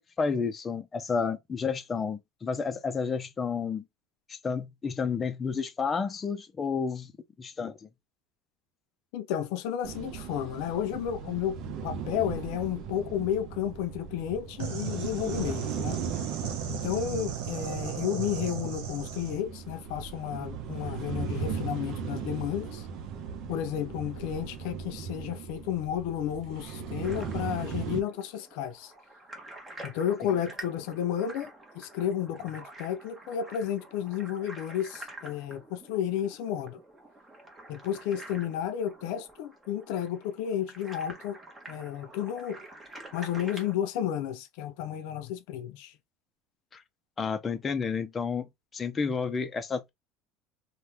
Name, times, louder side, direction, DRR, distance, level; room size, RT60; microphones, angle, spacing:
voice 1, 0.0-3.8 4.3-7.1 7.4-7.8 46.7-46.8 47.2-48.5 48.7-49.9, left 5 dB, 20° left, 0.5 m, -31 dB
voice 2, 9.1-11.6 11.8-16.0 16.7-22.8 23.5-28.9 29.8-31.5 31.8-36.8 37.7-41.4 41.7-42.6 43.1-45.9, left 10 dB, 75° left, 0.5 m, -32 dB
sound 1, 9.8-28.0, right 6 dB, 55° right, 0.6 m, -38 dB
sound 2, 14.6-19.4, right 9 dB, 85° right, 0.9 m, -36 dB
sound 3, 27.0-43.7, right 2 dB, 15° right, 1.1 m, -47 dB
2.7 x 2.2 x 3.3 m
cardioid pair, 140°, 0 cm